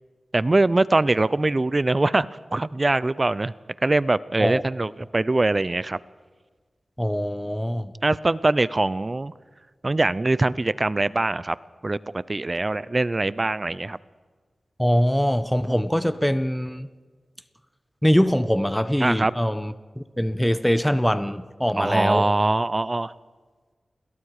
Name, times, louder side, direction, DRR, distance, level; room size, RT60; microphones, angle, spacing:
voice 1, 0.3-3.5 3.8-6.0 8.0-9.3 9.8-11.6 11.8-14.0 19.0-19.3 21.8-23.1, right 2 dB, 40° right, 0.7 m, -22 dB
voice 2, 7.0-7.9 14.8-16.9 18.0-22.3, equal, 5° left, 1.1 m, -23 dB
29.5 x 22.0 x 4.9 m
cardioid pair, 40°, 0 cm